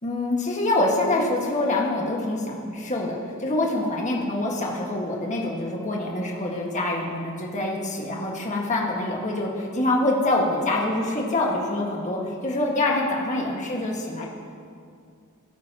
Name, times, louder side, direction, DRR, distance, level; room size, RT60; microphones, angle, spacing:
voice 1, 0.0-14.3, left 2 dB, 35° left, -2 dB, 1.7 m, -25 dB
21.0 x 9.4 x 2.9 m, 2.3 s
head